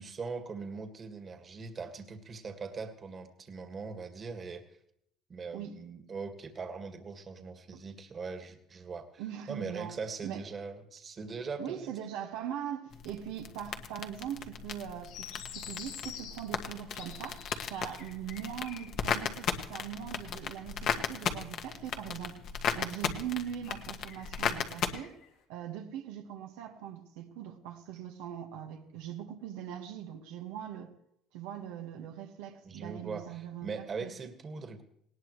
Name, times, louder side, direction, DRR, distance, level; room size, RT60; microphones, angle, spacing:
voice 1, 0.0-4.6 5.3-9.2 9.5-11.9 32.6-34.8, right 4 dB, 35° right, 1.9 m, -41 dB
voice 2, 9.2-10.0 10.2-10.4 11.6-17.4 17.7-22.4 22.7-25.2 25.5-30.9 31.3-34.1, right 10 dB, 90° right, 1.6 m, -41 dB
sound 1, 12.9-24.9, left 7 dB, 55° left, 1.5 m, -36 dB
sound 2, 15.0-19.3 19.6-20.1 21.0-21.1 23.1-25.3, left 8 dB, 80° left, 3.0 m, -48 dB
19.0 x 18.0 x 3.2 m
cardioid pair, 105°, 0 cm